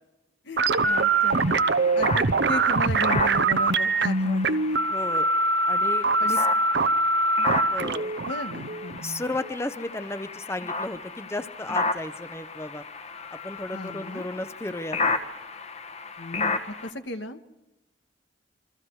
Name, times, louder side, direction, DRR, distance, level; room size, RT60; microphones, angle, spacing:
voice 1, 0.4-1.6 2.0-4.6 6.0-6.4 8.3-9.0 13.7-14.3 16.2-17.4, left 2 dB, 85° left, 7 dB, 1.6 m, -35 dB
sound 1, 0.6-9.5, right 3 dB, 65° right, 0.8 m, -23 dB
sound 2, 0.7-16.9, left 3 dB, 35° left, 1.4 m, -34 dB
voice 2, 4.9-5.3 5.7-6.5 7.7-8.1 9.0-12.8 13.3-15.0, left 2 dB, 15° left, 11 dB, 0.8 m, -34 dB
28.0 x 24.5 x 4.8 m, 0.94 s
head